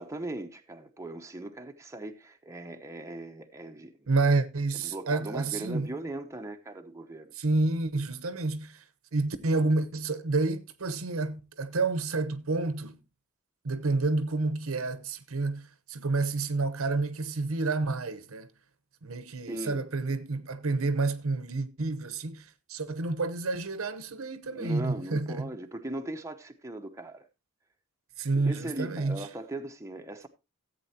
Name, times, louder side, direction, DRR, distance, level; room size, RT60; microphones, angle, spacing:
voice 1, 0.0-4.0 4.7-7.3 19.5-19.8 24.5-27.3 28.4-30.3, right 1 dB, 15° right, 0.8 m, -39 dB
voice 2, 4.1-5.9 7.4-8.8 9.1-13.0 13.6-18.5 19.0-25.5 28.2-29.3, right 3 dB, 85° right, 0.9 m, -29 dB
14.5 x 8.3 x 2.8 m
head